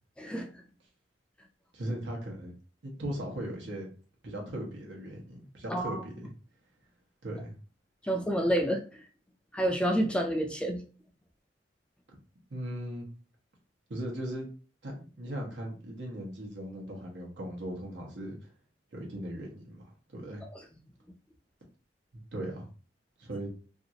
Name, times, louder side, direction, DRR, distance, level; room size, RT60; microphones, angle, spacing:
voice 1, 0.2-0.5 5.7-6.0 8.0-8.8 9.5-10.8, right 1 dB, 5° left, 3 dB, 0.3 m, -28 dB
voice 2, 1.7-2.5 2.8-3.9 4.2-6.3 7.2-7.5 12.5-13.1 13.9-14.5 14.8-18.5 18.9-20.4 22.3-22.7 23.2-23.5, right 1 dB, 80° right, -1 dB, 1.0 m, -38 dB
2.7 x 2.5 x 2.8 m, 0.38 s
head